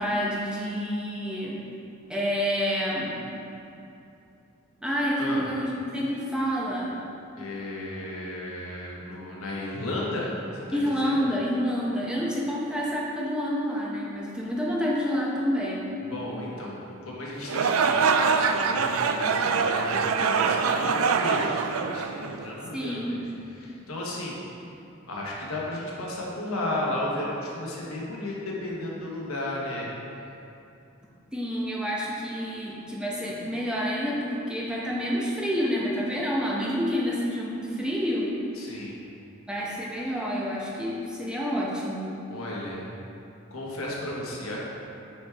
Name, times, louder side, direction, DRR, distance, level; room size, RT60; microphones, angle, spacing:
voice 1, 0.0-1.6 2.1-3.2 4.8-7.0 10.7-15.9 22.7-23.2 31.3-38.3 39.5-42.1, equal, 5° right, -5 dB, 0.9 m, -28 dB
voice 2, 7.4-11.2 16.0-21.6 21.9-23.2 23.5-24.4 25.1-29.9 38.6-38.9 42.3-42.9 43.5-44.6, left 1 dB, 85° left, -4 dB, 1.4 m, -34 dB
sound 1, 17.4-22.7, right 5 dB, 75° right, 0.4 m, -24 dB
9.2 x 4.7 x 3.5 m, 2.7 s
head